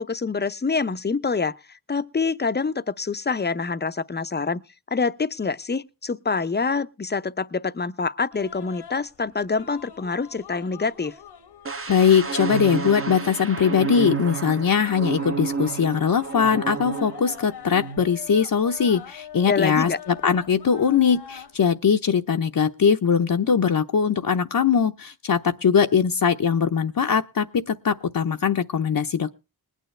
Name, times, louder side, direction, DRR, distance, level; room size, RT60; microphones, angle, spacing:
voice 1, 0.0-4.6 4.9-11.1 19.4-20.0, left 4 dB, 25° left, 0.7 m, -26 dB
sound 1, 8.3-21.6, left 8 dB, 85° left, 1.4 m, -44 dB
sound 2, 11.7-17.4 17.7-18.0, right 5 dB, 35° right, 1.1 m, -30 dB
voice 2, 11.9-29.3, left 7 dB, 60° left, 0.9 m, -21 dB
21.0 x 9.2 x 3.3 m
wide cardioid pair, 90°, 39 cm